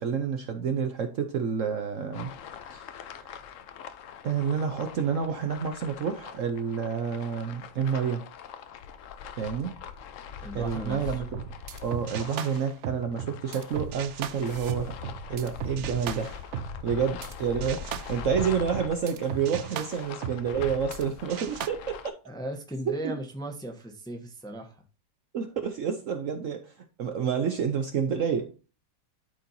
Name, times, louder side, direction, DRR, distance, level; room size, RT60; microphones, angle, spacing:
voice 1, 0.0-2.3 2.7-3.3 4.2-8.3 9.4-9.8 10.5-11.4 11.8-15.0 15.3-16.3 16.8-22.0 23.0-23.2 25.3-28.5, right 7 dB, 60° right, 0.9 m, -29 dB
sound 1, 2.1-22.1, left 7 dB, 65° left, 0.8 m, -42 dB
voice 2, 10.4-11.1 22.3-24.8, equal, 5° left, 0.8 m, -37 dB
sound 2, 11.3-17.3 17.6-21.0 21.3-21.7, right 9 dB, 80° right, 0.6 m, -37 dB
12.0 x 4.3 x 2.7 m
omnidirectional pair, 1.8 m